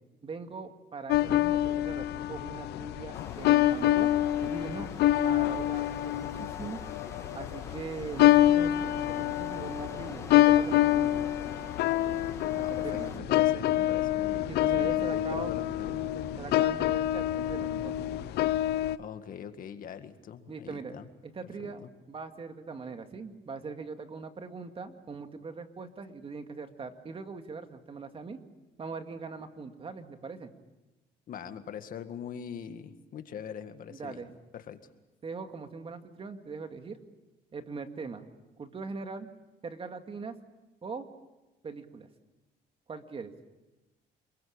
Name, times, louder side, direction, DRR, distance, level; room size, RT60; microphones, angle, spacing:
voice 1, 0.2-4.1 4.4-4.9 5.2-6.8 7.3-11.2 12.5-13.1 14.5-15.6 16.4-18.1 20.5-28.4 28.8-30.5 33.9-34.4 35.2-37.0 37.5-38.3 38.6-39.3 39.6-40.4 40.8-41.0 41.6-42.1 42.9-43.3, right 4 dB, 35° right, 7 dB, 2.2 m, -41 dB
sound 1, 1.1-19.0, left 14 dB, 80° left, 0.8 m, -26 dB
sound 2, 3.1-13.2, left 3 dB, 15° left, 1.7 m, -47 dB
sound 3, 7.1-18.3, right 4 dB, 90° right, 3.0 m, -47 dB
voice 2, 12.6-16.4 19.0-21.1 21.6-21.9 31.3-34.3 34.5-34.8, left 8 dB, 55° left, 9 dB, 2.0 m, -42 dB
27.5 x 22.5 x 8.8 m, 1.1 s
cardioid pair, 110°, 17 cm